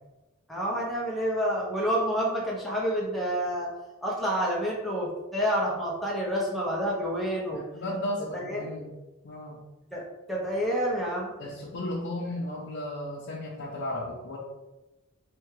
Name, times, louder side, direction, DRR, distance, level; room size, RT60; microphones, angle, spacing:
voice 1, 0.5-3.7 4.0-7.6 8.3-8.7 9.9-10.0 10.3-11.3, equal, ahead, -5 dB, 0.8 m, -28 dB
voice 2, 7.5-8.9 9.2-9.6 11.4-14.4, left 1 dB, 60° left, -5 dB, 0.7 m, -34 dB
3.4 x 3.4 x 3.1 m, 1.1 s
head